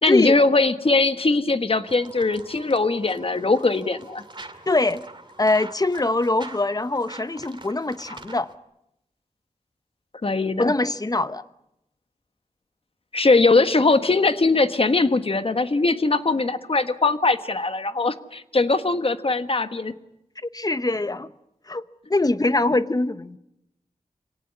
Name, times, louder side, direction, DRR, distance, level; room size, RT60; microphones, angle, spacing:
voice 1, 0.0-4.2 10.2-10.7 13.1-19.9, left 3 dB, 45° left, 10 dB, 1.4 m, -21 dB
sound 1, 1.8-8.5, right 2 dB, 35° right, 2.3 m, -44 dB
voice 2, 4.7-5.0 5.4-8.5 10.6-11.4 20.4-21.3 21.7-23.4, left 2 dB, 30° left, 13 dB, 1.0 m, -23 dB
26.5 x 18.0 x 9.9 m, 0.86 s
wide cardioid pair, 90°, 13 cm